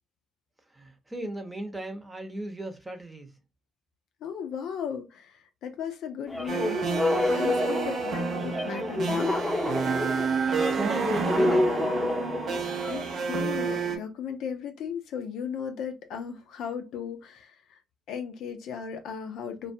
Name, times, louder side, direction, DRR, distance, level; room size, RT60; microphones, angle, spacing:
voice 1, 0.7-3.3 10.5-11.7, right 1 dB, 20° right, 0.8 m, -36 dB
voice 2, 4.2-6.9 7.3-9.3 12.9-17.8 18.1-19.7, left 7 dB, 70° left, 0.4 m, -36 dB
sound 1, 6.3-13.1, left 2 dB, 10° left, 0.8 m, -28 dB
sound 2, 6.5-14.0, right 5 dB, 60° right, 0.6 m, -30 dB
2.2 x 2.2 x 2.6 m
hypercardioid pair, 55°, 0 cm